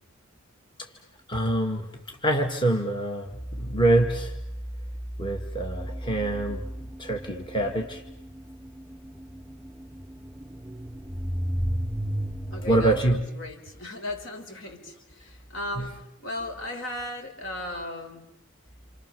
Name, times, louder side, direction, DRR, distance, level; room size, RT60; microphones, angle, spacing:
voice 1, 1.3-1.9 2.2-4.3 5.2-6.6 7.0-8.0 12.7-13.3 15.8-15.9, right 1 dB, 25° left, 3 dB, 2.0 m, -25 dB
sound 1, 5.8-13.0, equal, 5° right, 2.3 m, -32 dB
voice 2, 12.5-18.3, left 1 dB, 65° left, 3 dB, 5.3 m, -36 dB
29.5 x 28.5 x 6.9 m, 0.76 s
head